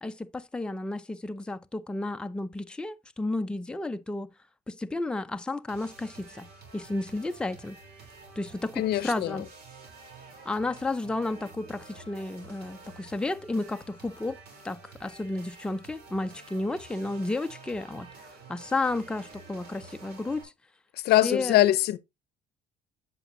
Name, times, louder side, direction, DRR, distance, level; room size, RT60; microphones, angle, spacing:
voice 1, 0.0-4.3 4.7-6.5 6.7-7.8 8.4-9.5 10.5-14.4 14.6-18.1 18.5-20.5 21.2-21.6, left 2 dB, 5° left, 0.5 m, -32 dB
sound 1, 5.7-20.4, right 3 dB, 70° right, 3.3 m, -49 dB
voice 2, 8.8-9.4 21.0-22.0, left 14 dB, 70° left, 0.6 m, -23 dB
8.1 x 7.6 x 2.6 m
cardioid pair, 110°, 17 cm